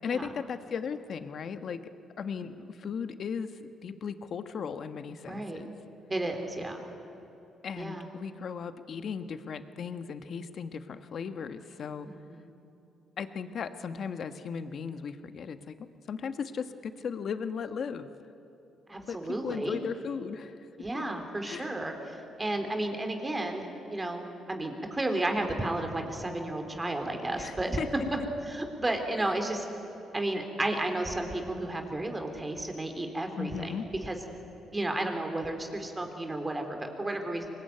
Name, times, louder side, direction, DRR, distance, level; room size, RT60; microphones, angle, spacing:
voice 1, 0.0-1.8 2.2-5.7 7.6-12.1 13.2-15.7 16.1-18.1 19.1-20.5 20.9-21.0 21.4-21.7 27.3-28.1 29.2-29.3 33.4-33.9, left 6 dB, 55° left, 10 dB, 1.3 m, -36 dB
voice 2, 5.2-5.6 6.1-6.8 7.8-8.1 12.0-12.5 18.9-19.8 20.8-27.8 28.4-29.7 30.1-34.2 34.7-37.5, right 1 dB, 20° right, 4 dB, 3.7 m, -33 dB
24.5 x 20.5 x 9.5 m, 2.9 s
cardioid pair, 90°, 0 cm